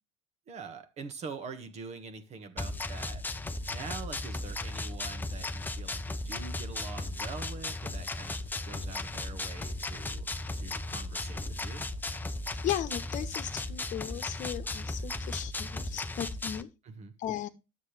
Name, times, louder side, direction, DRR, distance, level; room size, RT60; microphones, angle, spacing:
voice 1, 0.5-3.3 3.7-11.9 16.8-17.1, right 5 dB, 40° right, 1.5 m, -44 dB
sound 1, 2.6-16.6, left 2 dB, 10° left, 0.7 m, -36 dB
voice 2, 12.6-16.7 17.2-17.5, left 12 dB, 50° left, 1.1 m, -36 dB
9.7 x 7.7 x 3.3 m
supercardioid pair, 100°, 17 cm